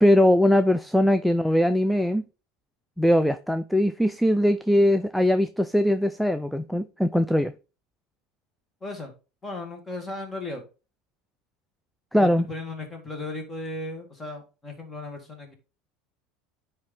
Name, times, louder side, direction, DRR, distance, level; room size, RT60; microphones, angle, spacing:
voice 1, 0.0-2.2 3.0-7.5 12.1-12.5, equal, ahead, 0.3 m, -21 dB
voice 2, 8.8-9.1 9.4-10.6 12.2-15.5, left 2 dB, 20° left, 2.0 m, -36 dB
9.6 x 3.3 x 3.8 m
supercardioid pair, 115°, 0 cm